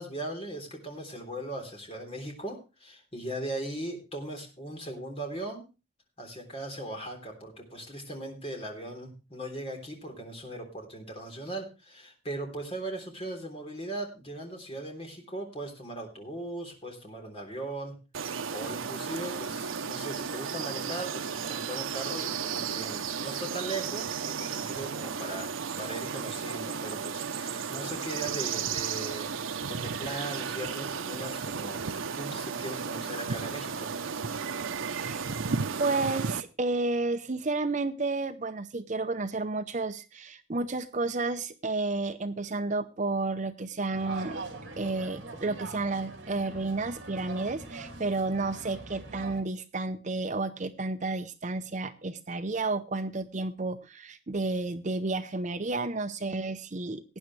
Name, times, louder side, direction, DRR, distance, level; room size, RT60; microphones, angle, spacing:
voice 1, 0.0-5.6 6.2-17.9 18.5-25.5 25.8-33.9, right 1 dB, 30° left, 3 dB, 3.5 m, -39 dB
sound 1, 18.1-36.4, right 6 dB, 80° right, 0.7 m, -34 dB
voice 2, 34.8-35.3 35.8-44.5 44.8-57.2, right 3 dB, 35° right, 9 dB, 0.7 m, -31 dB
sound 2, 43.9-49.4, right 3 dB, 60° right, 3.0 m, -42 dB
18.5 x 9.5 x 3.2 m, 0.30 s
head